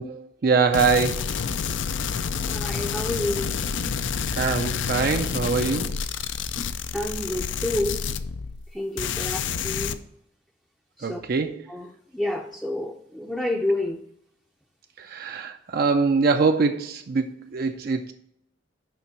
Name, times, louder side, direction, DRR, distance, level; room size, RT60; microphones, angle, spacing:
voice 1, 0.0-1.3 4.3-5.9 11.0-11.7 15.0-18.1, right 4 dB, 50° right, 6 dB, 0.4 m, -23 dB
sound 1, 0.7-8.7 9.0-9.9, left 6 dB, 75° left, 0.5 m, -28 dB
voice 2, 2.5-3.5 6.9-8.0 8.7-10.0 11.0-11.2 11.7-14.0, left 1 dB, 5° left, -1 dB, 0.5 m, -29 dB
6.9 x 5.3 x 5.9 m, 0.77 s
head